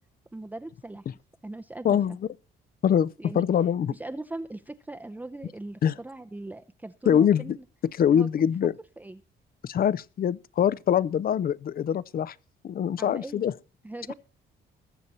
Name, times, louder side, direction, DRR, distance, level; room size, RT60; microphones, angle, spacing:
voice 1, 0.3-1.1 1.4-2.0 3.2-3.4 3.9-7.6 8.1-8.5 9.0-9.2 13.0-13.4 13.8-14.1, right 2 dB, 10° right, 0.5 m, -39 dB
voice 2, 1.8-2.2 2.8-3.9 5.8-5.9 7.1-7.6 8.0-8.7 9.6-12.4 12.6-13.5 14.1-14.2, left 9 dB, 50° left, 0.5 m, -24 dB
20.5 x 7.4 x 4.1 m
cardioid pair, 110°, 20 cm